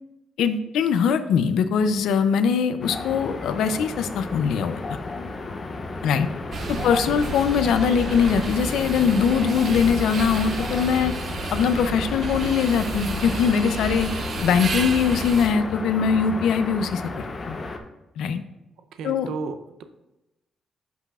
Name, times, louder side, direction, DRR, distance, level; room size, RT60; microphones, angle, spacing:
voice 1, 0.4-5.0 6.0-6.3 6.7-11.1 11.5-14.1 14.4-17.6 18.2-18.4 19.0-19.3, left 6 dB, 85° left, 10 dB, 0.5 m, -22 dB
sound 1, 2.8-17.8, left 3 dB, 25° left, 0.6 m, -33 dB
sound 2, 5.9-10.5, left 1 dB, 10° left, 1.1 m, -48 dB
sound 3, 6.5-15.5, right 4 dB, 40° right, 0.5 m, -31 dB
voice 2, 6.8-7.3 18.9-19.8, right 4 dB, 90° right, 8 dB, 0.6 m, -34 dB
11.0 x 6.1 x 2.4 m, 0.99 s
cardioid pair, 175°, 0 cm